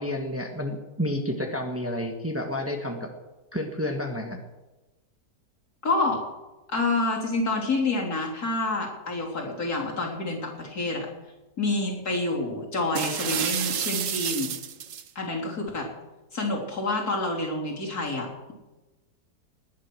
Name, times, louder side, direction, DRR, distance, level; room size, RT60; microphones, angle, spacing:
voice 1, 0.0-3.1 3.5-4.4, left 1 dB, 10° right, 3 dB, 1.5 m, -30 dB
voice 2, 5.8-6.2 6.7-11.1 11.6-14.5 15.2-15.9 16.3-18.5, left 2 dB, 65° left, -2 dB, 4.1 m, -28 dB
sound 1, 13.0-15.1, right 9 dB, 55° right, 1.1 m, -29 dB
19.5 x 10.0 x 6.3 m, 1.1 s
omnidirectional pair, 1.7 m